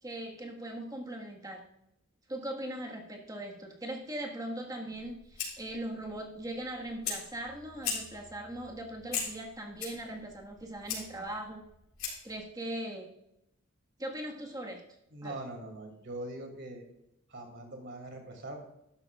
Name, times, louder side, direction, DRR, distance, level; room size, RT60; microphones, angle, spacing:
voice 1, 0.0-1.7 2.3-11.6 12.2-13.1 14.0-14.8 15.2-15.4, right 1 dB, 15° right, 0 dB, 1.6 m, -40 dB
Fire, 4.9-12.4, left 6 dB, 85° left, 3.8 m, -41 dB
voice 2, 15.1-16.8 17.3-18.6, right 1 dB, 55° right, 3 dB, 2.6 m, -42 dB
13.0 x 11.5 x 2.4 m, 0.82 s
head